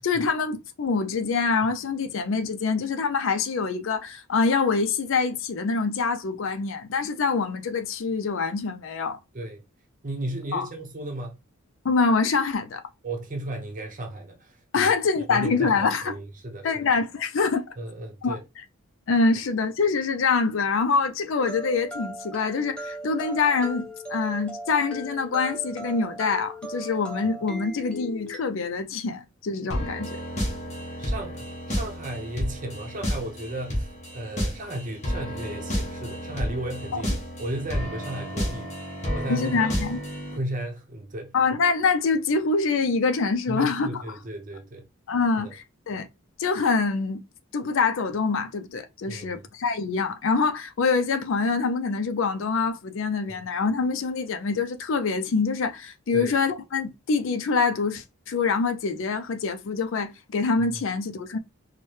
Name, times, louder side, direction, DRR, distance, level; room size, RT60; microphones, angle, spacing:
voice 1, 0.0-9.2 10.5-10.7 11.8-12.8 14.7-16.1 16.6-17.6 18.2-18.4 19.1-30.2 36.9-37.0 39.3-40.0 41.3-43.9 45.1-46.1 46.4-47.2 47.5-61.4, left 4 dB, 65° left, 0.4 m, -25 dB
voice 2, 10.0-11.4 13.0-14.9 15.3-16.8 17.8-18.4 31.0-37.1 37.4-38.7 39.1-39.7 40.3-41.3 43.5-44.8 45.4-45.5 49.1-49.4 53.3-53.4 56.1-56.3, right 1 dB, 40° right, 0.7 m, -34 dB
sound 1, 21.4-28.4, equal, 5° left, 0.9 m, -38 dB
sound 2, 29.7-40.4, equal, 35° left, 1.1 m, -31 dB
4.6 x 2.1 x 3.1 m
head